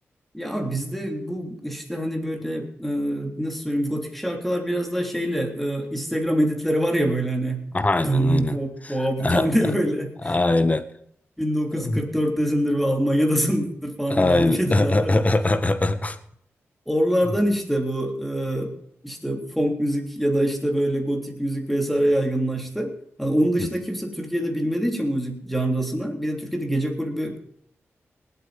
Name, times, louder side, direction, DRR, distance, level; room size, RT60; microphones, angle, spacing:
voice 1, 0.3-7.6 8.0-10.3 11.4-15.3 16.9-18.7 19.0-27.4, right 1 dB, ahead, 3 dB, 3.5 m, -25 dB
voice 2, 7.7-8.6 8.8-8.9 9.2-9.4 10.2-10.8 11.8-12.0 14.1-16.2 23.6-23.7, left 2 dB, 30° left, 11 dB, 1.5 m, -21 dB
19.0 x 8.5 x 5.3 m, 0.69 s
cardioid pair, 60°, 5 cm